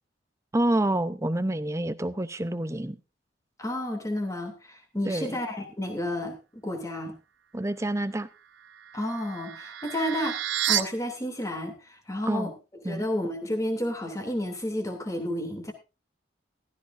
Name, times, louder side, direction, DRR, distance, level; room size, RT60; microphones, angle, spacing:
voice 1, 0.5-3.0 5.1-5.4 7.5-8.3 12.2-12.5 12.8-13.0, right 1 dB, 15° right, 0.7 m, -28 dB
voice 2, 3.6-7.1 8.9-10.4 10.7-12.5 12.9-15.7, left 1 dB, 15° left, 2.7 m, -31 dB
sound 1, 8.6-10.8, right 12 dB, 85° right, 0.9 m, -31 dB
15.5 x 14.0 x 2.6 m
head